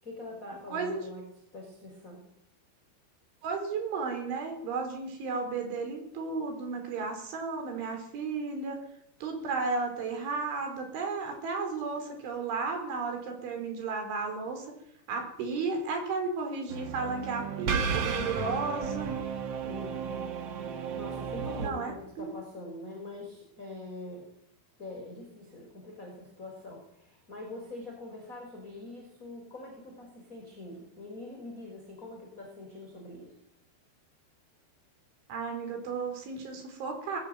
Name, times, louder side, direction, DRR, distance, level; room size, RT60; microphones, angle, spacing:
voice 1, 0.0-1.2 1.5-2.2 19.6-20.2 20.5-24.3 24.8-33.3, left 2 dB, 15° left, 0 dB, 5.5 m, -44 dB
voice 2, 0.7-1.1 3.4-8.8 9.2-14.7 15.1-19.1 21.6-21.9 22.2-22.3 35.3-37.2, right 4 dB, 85° right, 4 dB, 7.1 m, -33 dB
sound 1, 16.7-21.7, right 6 dB, 55° right, 1.8 m, -33 dB
21.0 x 18.0 x 9.3 m, 0.74 s
omnidirectional pair, 5.3 m